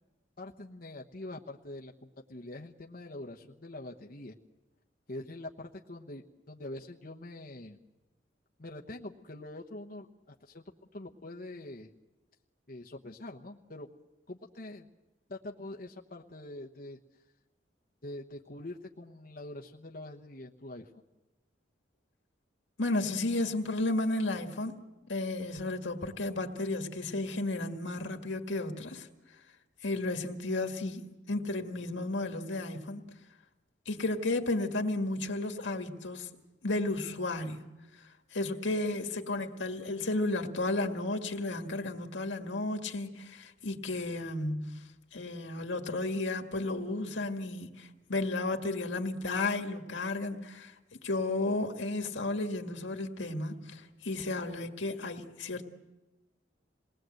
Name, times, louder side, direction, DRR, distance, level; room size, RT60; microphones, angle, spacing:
voice 1, 0.4-4.3 5.1-7.8 8.6-10.6 10.9-11.9 12.7-13.9 14.3-14.9 15.3-17.0 18.0-20.9, left 1 dB, 50° left, 1.1 m, -44 dB
voice 2, 22.8-24.8 25.1-29.1 29.8-33.0 33.9-36.3 36.6-37.6 38.3-55.6, left 2 dB, 80° left, 1.9 m, -33 dB
28.0 x 20.0 x 7.8 m
head